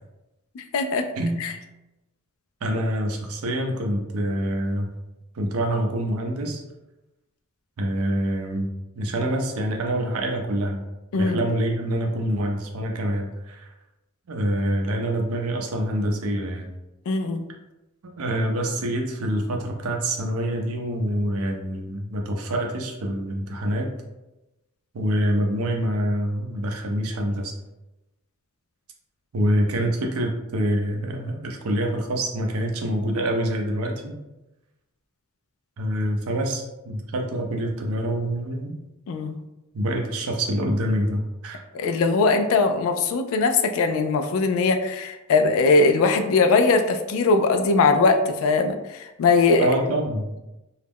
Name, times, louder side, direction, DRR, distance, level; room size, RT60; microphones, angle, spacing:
voice 1, 0.6-1.1 1.4-1.5 11.1-11.4 17.1-17.5 39.1-39.4 41.7-49.7, left 3 dB, 65° left, 7 dB, 0.3 m, -20 dB
voice 2, 2.6-4.9 5.3-6.6 7.8-8.7 8.9-10.8 11.2-13.7 14.3-16.7 18.0-23.9 24.9-27.5 29.3-34.1 35.8-38.7 39.7-41.6 49.6-50.3, right 1 dB, 75° right, 2 dB, 0.5 m, -26 dB
2.3 x 2.0 x 3.4 m, 0.99 s
head